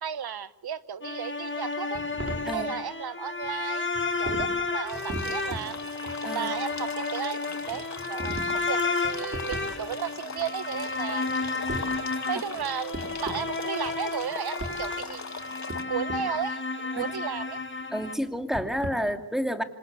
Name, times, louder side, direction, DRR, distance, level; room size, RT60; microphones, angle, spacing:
voice 1, 0.0-2.0 2.5-3.9 4.2-5.8 6.3-7.4 7.7-11.3 12.3-15.2 15.9-17.6, right 8 dB, 90° right, 15 dB, 1.1 m, -34 dB
sound 1, 1.0-18.1, left 3 dB, 30° left, 2.2 m, -32 dB
sound 2, 1.9-2.5 3.4-3.5 3.9-4.5 4.8-5.8 6.1-7.0 7.6-8.5 8.8-10.1 10.4-10.5 10.7-12.0 12.5-12.6 12.9-13.5 13.8-14.2 14.6-14.8 15.4-16.2 16.9-18.1 18.4-18.9, right 1 dB, 40° right, 5.4 m, -38 dB
sound 3, 4.9-15.8, left 4 dB, 50° left, 1.9 m, -40 dB
voice 2, 17.9-19.6, equal, ahead, 6 dB, 2.9 m, -30 dB
27.0 x 26.5 x 8.4 m, 0.78 s
wide cardioid pair, 80°, 37 cm